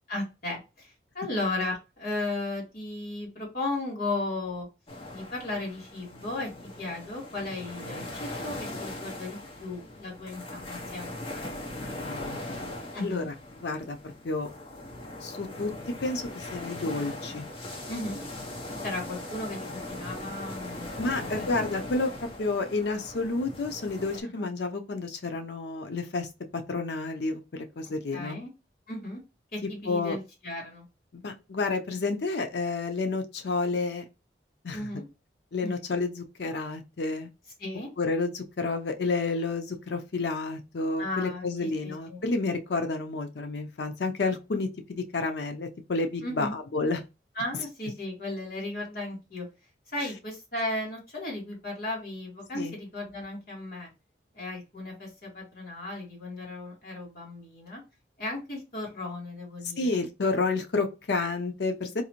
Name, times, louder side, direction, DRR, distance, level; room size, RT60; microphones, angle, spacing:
voice 1, 0.1-4.7 5.1-11.1 12.9-13.3 17.9-18.2 18.8-21.5 24.3-24.5 28.1-28.5 28.9-29.2 29.5-30.8 34.7-35.1 35.6-35.8 37.6-37.9 41.0-42.2 46.2-46.5 47.3-49.4 49.9-53.9 54.3-57.8 58.2-60.0, left 2 dB, 50° left, 1.7 m, -35 dB
sound 1, 4.9-24.2, left 1 dB, 30° left, 0.7 m, -40 dB
voice 2, 11.8-12.4 13.0-13.3 13.6-14.5 15.2-15.7 16.0-17.5 21.0-26.3 26.5-28.4 29.9-30.2 31.1-34.0 34.6-34.8 35.5-37.3 38.0-47.0 52.5-52.7 59.8-62.0, left 3 dB, 70° left, 0.5 m, -30 dB
3.9 x 2.4 x 2.9 m
head